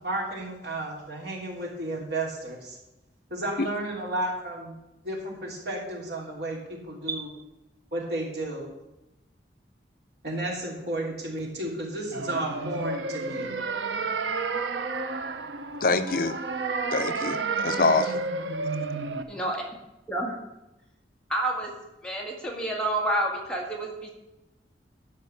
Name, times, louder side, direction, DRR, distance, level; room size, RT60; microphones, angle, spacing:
voice 1, 0.0-2.8 3.3-4.7 5.0-7.3 7.9-8.6 10.2-13.5, right 1 dB, 65° right, -2 dB, 3.1 m, -32 dB
sound 1, 12.1-19.2, right 4 dB, 85° right, 0.8 m, -31 dB
voice 2, 15.8-16.4 16.9-18.2, left 3 dB, 50° left, 10 dB, 0.6 m, -25 dB
voice 3, 19.3-19.6 20.1-20.4 21.3-21.7 22.0-24.1, right 1 dB, 5° left, -1 dB, 1.7 m, -29 dB
12.0 x 4.6 x 8.2 m, 0.94 s
head